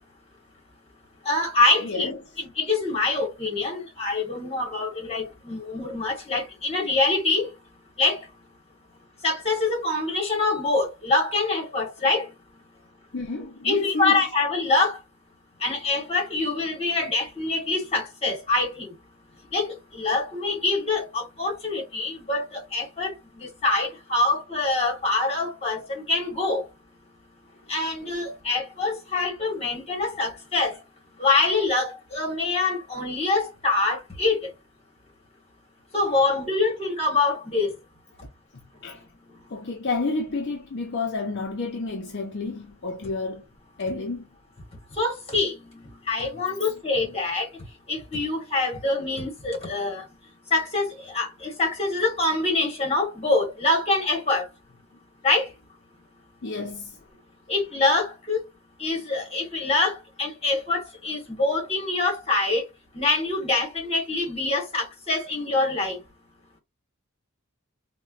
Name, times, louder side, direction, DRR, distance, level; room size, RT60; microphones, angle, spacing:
voice 1, 1.2-7.5 8.0-8.2 9.2-12.3 13.6-15.0 15.6-18.9 19.5-26.6 27.7-30.8 31.2-34.5 35.9-37.7 45.0-47.5 47.9-50.1 50.5-54.5 55.2-55.5 57.5-58.4 58.8-62.7 62.9-66.0, left 3 dB, 25° left, 1.2 m, -25 dB
voice 2, 1.8-2.2 13.1-14.2 38.5-39.0 39.5-43.4 43.8-44.3 56.4-57.0, left 3 dB, 50° left, 0.5 m, -30 dB
4.2 x 2.2 x 2.4 m
head